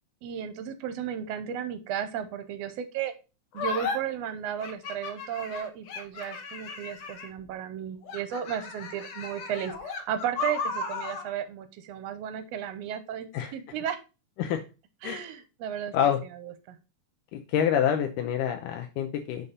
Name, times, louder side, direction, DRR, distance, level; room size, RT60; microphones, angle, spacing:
voice 1, 0.2-3.1 3.5-14.0 15.0-16.0 16.4-16.8, right 9 dB, 70° right, 10 dB, 1.6 m, -34 dB
sound 1, 3.5-4.0 4.6-7.4 8.0-11.3, left 4 dB, 65° left, 2.2 m, -35 dB
voice 2, 17.3-19.5, left 9 dB, 85° left, 4 dB, 2.3 m, -27 dB
6.9 x 4.2 x 5.1 m, 0.30 s
omnidirectional pair, 3.7 m